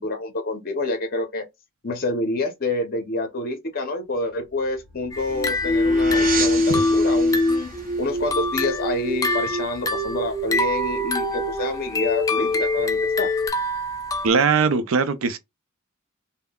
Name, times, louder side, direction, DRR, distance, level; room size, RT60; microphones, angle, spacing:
voice 1, 0.0-1.5 1.8-7.7 8.0-13.3, left 2 dB, 45° left, 0.7 m, -27 dB
sound 1, 4.4-9.7, right 5 dB, 40° right, 0.8 m, -34 dB
sound 2, 5.1-7.7 8.1-14.3, left 2 dB, 15° left, 0.3 m, -28 dB
sound 3, 5.3-13.5, left 1 dB, 10° right, 1.2 m, -24 dB
voice 2, 14.2-15.4, right 5 dB, 75° right, 0.5 m, -20 dB
3.6 x 2.2 x 2.2 m
head